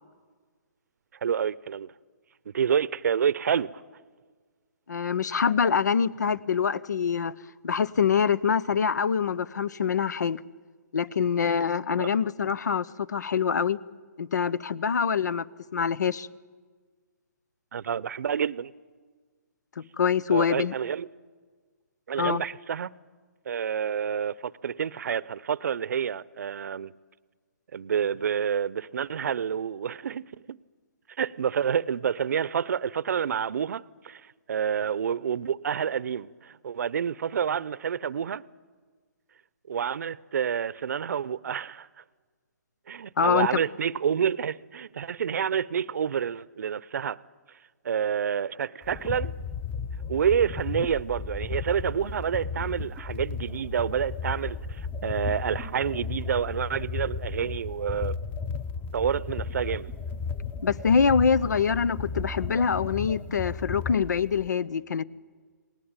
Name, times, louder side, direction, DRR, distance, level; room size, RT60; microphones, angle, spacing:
voice 1, 1.2-1.9 2.5-3.7 17.7-18.7 20.3-21.1 22.1-22.9 23.5-26.9 27.7-30.6 31.2-34.2 34.5-38.4 39.7-41.9 42.9-47.2 47.8-49.3 50.1-58.2 58.9-60.0, right 8 dB, 65° right, 0.7 m, -28 dB
voice 2, 4.9-7.3 7.6-10.4 10.9-13.8 14.2-15.5 15.7-16.3 19.8-20.7 22.2-22.4 43.2-43.6 60.6-65.0, left 6 dB, 75° left, 0.8 m, -25 dB
sound 1, 48.8-64.5, left 5 dB, 15° left, 1.0 m, -34 dB
30.0 x 19.5 x 8.9 m
hypercardioid pair, 145°, 10 cm